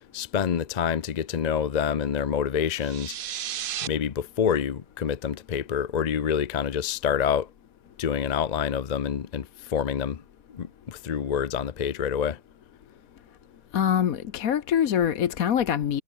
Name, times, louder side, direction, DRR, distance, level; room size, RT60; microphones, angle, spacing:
voice 1, 0.1-3.1 3.8-7.5 8.0-10.2 10.5-12.4, left 8 dB, 50° left, 0.5 m, -27 dB
sound 1, 2.7-3.9, right 10 dB, 70° right, 0.5 m, -33 dB
voice 2, 13.7-16.0, left 9 dB, 65° left, 1.4 m, -24 dB
omnidirectional pair, 1.6 m